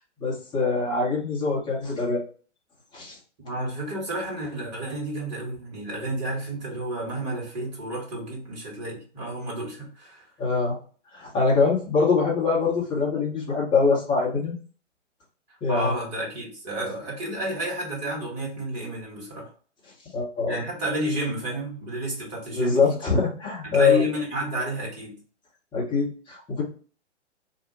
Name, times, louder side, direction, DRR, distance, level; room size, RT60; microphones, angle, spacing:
voice 1, 0.2-2.2 2.9-3.2 10.4-10.8 11.1-14.5 15.6-15.9 20.1-20.6 22.5-24.0 25.7-26.6, left 4 dB, 10° left, -5 dB, 1.1 m, -23 dB
voice 2, 3.4-10.3 15.7-19.5 20.4-23.0 23.6-25.2, right 1 dB, 35° right, -2 dB, 1.6 m, -31 dB
2.8 x 2.4 x 3.8 m, 0.40 s
figure-of-eight pair, 120°, 36 cm